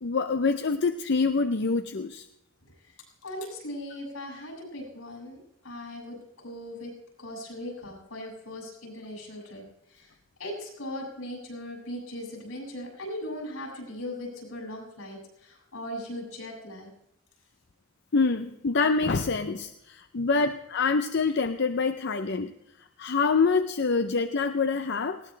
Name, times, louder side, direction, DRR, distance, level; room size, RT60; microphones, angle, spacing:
voice 1, 0.0-2.3 18.1-22.5 23.0-25.2, left 4 dB, 55° left, 8 dB, 0.6 m, -26 dB
voice 2, 2.8-6.9 7.2-10.1 10.4-16.9 20.2-20.3, left 1 dB, 85° left, 0 dB, 7.0 m, -39 dB
19.0 x 17.5 x 3.3 m, 0.85 s
head